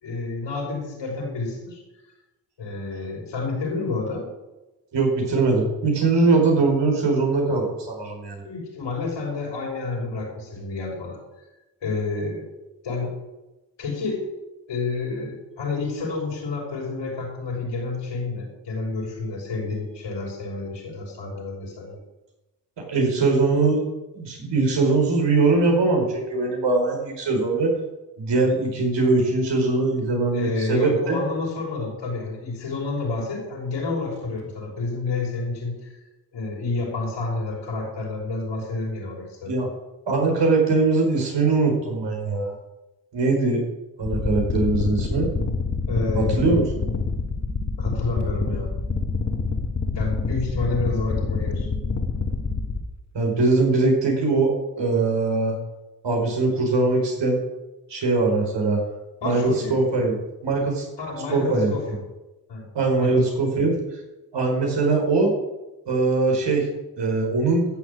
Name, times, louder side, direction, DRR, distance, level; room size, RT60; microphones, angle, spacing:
voice 1, 0.0-1.8 2.6-4.3 8.4-11.2 11.8-12.4 12.8-13.1 13.8-14.2 14.7-22.0 30.3-36.0 36.3-39.5 45.9-46.6 47.8-48.7 49.9-51.7 59.2-59.8 61.0-62.0 62.5-62.7 63.0-63.3, left 3 dB, 80° left, -2 dB, 5.6 m, -29 dB
voice 2, 4.9-8.4 22.9-23.9 24.1-27.7 28.2-31.2 39.5-39.7 40.1-42.5 43.1-43.6 44.0-45.3 46.1-46.6 53.1-55.6 56.0-57.4 57.9-58.8 59.2-60.2 60.4-60.9 61.3-61.7 62.7-63.7 64.3-65.3 65.9-66.7 67.0-67.6, right 3 dB, 75° right, 1 dB, 4.8 m, -21 dB
sound 1, 44.0-52.8, left 4 dB, 40° left, 2.1 m, -26 dB
13.5 x 7.3 x 8.6 m, 1.0 s
cardioid pair, 60°, 43 cm